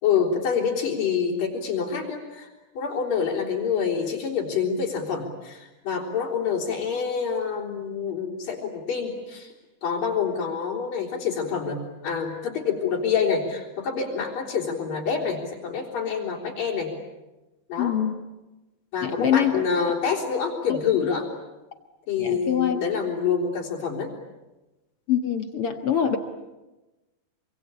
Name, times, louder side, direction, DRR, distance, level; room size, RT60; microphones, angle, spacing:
voice 1, 0.0-2.5 2.8-9.5 9.8-16.9 17.7-18.0 18.9-21.3 22.1-24.1, left 6 dB, 75° left, -3 dB, 5.3 m, -27 dB
voice 2, 17.8-18.1 19.0-19.6 20.7-20.8 22.2-22.8 25.1-26.2, left 9 dB, 55° left, 6 dB, 1.9 m, -24 dB
26.5 x 25.0 x 8.6 m, 1.1 s
omnidirectional pair, 4.0 m